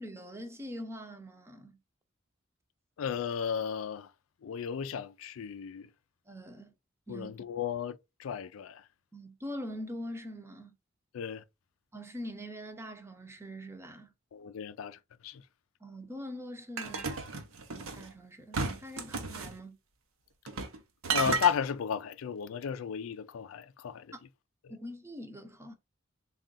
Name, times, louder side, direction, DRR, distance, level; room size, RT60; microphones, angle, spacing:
voice 1, 0.0-1.8 6.3-6.7 7.1-7.3 9.1-10.7 11.9-14.1 15.8-17.1 17.7-19.8 24.1-24.2 24.7-25.7, equal, 15° right, 0.7 m, -43 dB
voice 2, 3.0-4.1 4.4-5.9 7.1-8.8 11.1-11.4 14.3-15.0 15.2-15.4 21.1-24.1, left 7 dB, 70° left, 0.4 m, -34 dB
sound 1, 16.8-18.1 18.5-19.5 20.5-20.8 21.0-21.5, right 4 dB, 80° right, 0.7 m, -33 dB
3.6 x 2.3 x 3.9 m
head